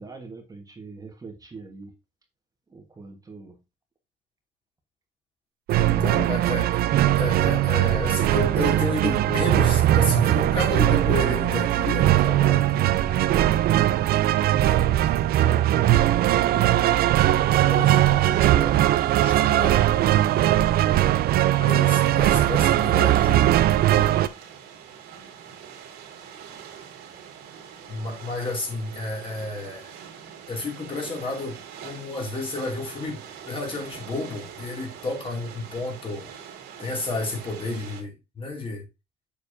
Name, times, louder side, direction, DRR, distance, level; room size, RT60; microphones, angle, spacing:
voice 1, 0.0-1.9 2.7-3.6 15.4-18.9, right 3 dB, 20° right, 1.4 m, -39 dB
sound 1, 5.7-24.3, right 13 dB, 65° right, 0.5 m, -20 dB
voice 2, 5.9-6.8 7.2-13.0 17.7-17.9 19.2-19.8 21.6-23.6 27.9-29.9 30.5-36.3 36.8-38.8, left 3 dB, 30° left, 2.6 m, -31 dB
sound 2, 23.8-38.0, right 8 dB, 85° right, 2.1 m, -43 dB
7.1 x 6.5 x 2.7 m
cardioid pair, 110°, 17 cm